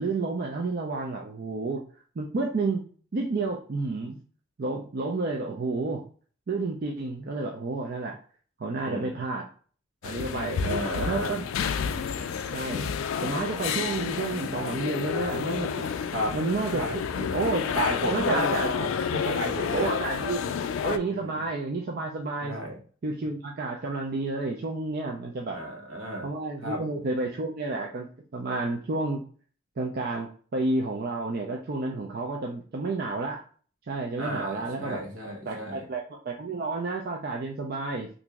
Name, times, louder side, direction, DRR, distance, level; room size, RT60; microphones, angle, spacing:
voice 1, 0.0-1.8 2.2-2.8 3.1-4.2 4.6-6.0 6.5-8.2 8.6-9.5 10.0-11.4 11.9-12.1 12.5-12.9 13.2-15.9 16.3-17.7 18.0-18.7 19.7-20.5 20.8-22.6 23.0-25.6 26.2-28.1 28.3-29.2 29.8-33.4 33.9-35.0 35.5-38.1, right 3 dB, 45° right, 0 dB, 0.4 m, -30 dB
voice 2, 8.8-9.2 10.6-11.4 16.1-16.4 16.7-17.0 17.7-19.9 21.1-21.4 22.4-22.8 25.5-26.3 26.6-26.8 34.2-35.9, equal, 75° right, 0 dB, 1.1 m, -32 dB
sound 1, 10.0-21.0, left 7 dB, 75° left, 0.3 m, -30 dB
2.9 x 2.6 x 3.4 m, 0.43 s
head